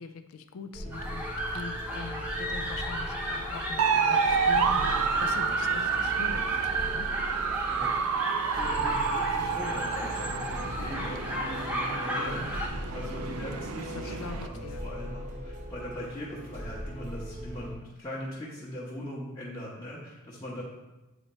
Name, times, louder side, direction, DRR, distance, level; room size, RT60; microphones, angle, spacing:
voice 1, 0.0-3.8 4.1-7.1 9.4-9.5 13.9-14.9, left 4 dB, 65° left, 7 dB, 0.4 m, -42 dB
sound 1, 0.7-17.8, equal, 35° right, 0.8 m, -40 dB
sound 2, 0.9-12.7, equal, 5° right, 0.8 m, -34 dB
sound 3, 3.8-14.5, right 6 dB, 85° right, 0.4 m, -29 dB
voice 2, 8.3-20.6, equal, 20° left, -8 dB, 0.9 m, -40 dB
8.0 x 2.8 x 4.2 m, 1.0 s
head